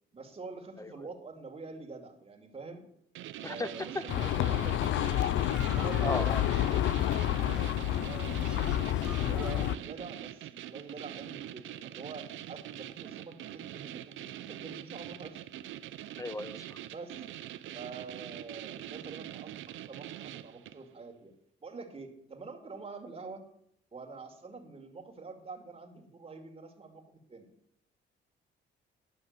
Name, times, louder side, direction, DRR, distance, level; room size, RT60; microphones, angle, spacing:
voice 1, 0.1-2.9 3.4-5.2 5.7-6.6 7.3-15.4 16.9-17.2 17.7-21.3 21.6-23.5 23.9-27.5, right 4 dB, 30° right, 3 dB, 2.1 m, -46 dB
sound 1, 3.2-20.9, right 12 dB, 75° right, 0.6 m, -44 dB
sound 2, 3.6-9.7, right 1 dB, 5° right, 1.3 m, -50 dB
sound 3, 4.1-9.8, left 13 dB, 75° left, 0.4 m, -29 dB
voice 2, 6.0-6.4 16.2-16.8, left 2 dB, 15° left, 15 dB, 0.4 m, -35 dB
11.0 x 5.9 x 6.5 m, 0.72 s
cardioid pair, 90°, 20 cm